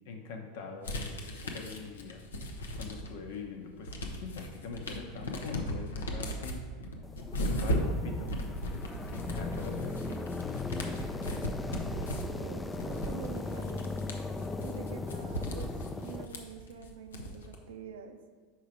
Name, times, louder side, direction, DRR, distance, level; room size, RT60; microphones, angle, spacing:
voice 1, 0.1-2.2 2.8-6.6 7.4-8.3 9.1-10.0, left 4 dB, 70° left, 3 dB, 0.9 m, -42 dB
sound 1, 0.8-3.3 3.6-17.6, equal, 90° left, 0.7 m, -37 dB
sound 2, 7.0-16.2, left 3 dB, 15° left, 0.4 m, -38 dB
sound 3, 7.9-15.1, left 11 dB, 40° left, 0.8 m, -63 dB
voice 2, 12.4-13.9 14.6-15.7 16.0-18.2, right 8 dB, 80° right, 7 dB, 0.5 m, -46 dB
4.7 x 4.6 x 5.0 m, 1.5 s
hypercardioid pair, 95°, 0 cm